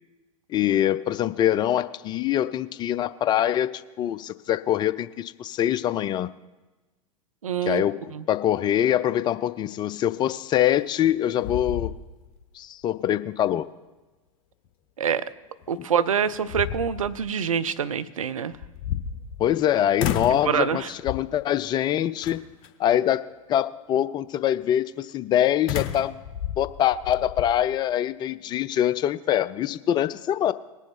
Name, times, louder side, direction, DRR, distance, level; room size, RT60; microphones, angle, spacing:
voice 1, 0.5-6.3 7.7-11.9 12.5-13.7 19.4-22.4 22.8-26.2 26.6-30.5, left 11 dB, 25° left, 15 dB, 0.3 m, -24 dB
voice 2, 7.4-7.8 8.1-8.2 15.0-15.2 15.7-18.5 20.4-20.9, right 7 dB, 75° right, 13 dB, 0.5 m, -25 dB
sound 1, 10.8-11.1 11.4-12.4 12.8-12.9 15.6-15.7 16.3-17.2 18.5-19.6 20.0-20.5 21.0-21.4 22.2-22.7 25.7-27.5, left 9 dB, 45° left, 1.0 m, -31 dB
19.5 x 7.1 x 4.3 m, 1.2 s
figure-of-eight pair, 85°, 18 cm